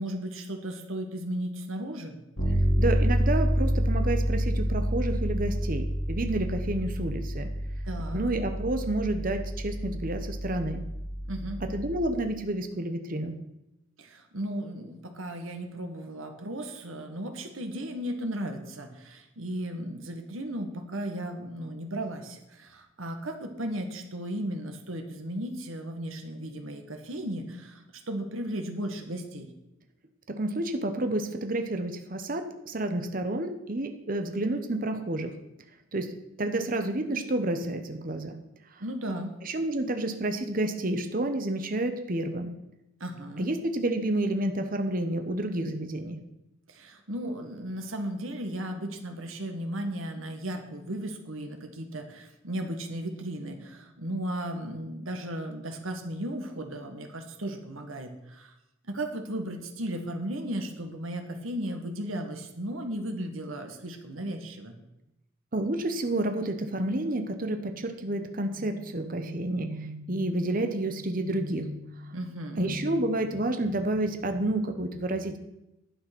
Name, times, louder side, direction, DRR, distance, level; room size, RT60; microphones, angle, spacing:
voice 1, 0.0-2.2 7.9-8.2 11.3-11.6 14.0-29.5 38.8-39.3 43.0-43.5 46.7-58.5 58.8-64.8 72.1-72.7, right 1 dB, 85° right, 5 dB, 1.8 m, -35 dB
Bass guitar, 2.4-12.1, equal, 60° left, 4.1 m, -28 dB
voice 2, 2.8-7.5 8.1-10.8 11.6-13.4 30.3-35.3 35.9-38.4 39.4-42.6 43.4-46.2 65.5-72.2 72.6-75.4, right 1 dB, 45° right, 7 dB, 1.0 m, -30 dB
11.5 x 8.7 x 6.1 m, 0.91 s
head